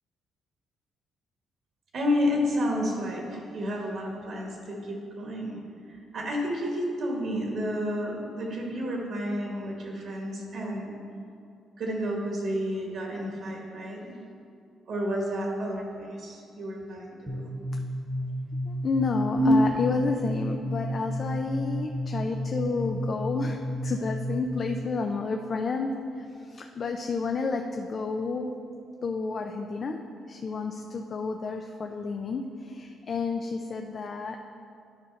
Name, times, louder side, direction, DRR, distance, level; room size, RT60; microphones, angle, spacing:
voice 1, 1.9-5.6 5.9-11.0 11.8-14.2 14.9-17.4 19.4-19.5, equal, 65° right, -1 dB, 1.5 m, -30 dB
sound 1, 17.3-24.8, equal, 20° right, 1.0 m, -32 dB
voice 2, 18.7-28.5 29.0-34.4, left 4 dB, 45° left, 3 dB, 0.5 m, -30 dB
11.0 x 5.0 x 4.0 m, 2.5 s
cardioid pair, 90°, 0 cm